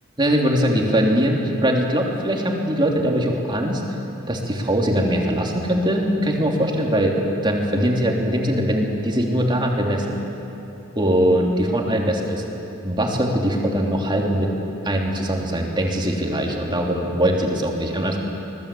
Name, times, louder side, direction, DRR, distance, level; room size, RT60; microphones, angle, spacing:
voice 1, 0.2-3.8 4.3-7.2 7.4-10.2 10.9-12.4 12.8-14.5 14.8-18.2, equal, 20° right, 0 dB, 3.0 m, -21 dB
25.5 x 19.0 x 8.5 m, 3.0 s
head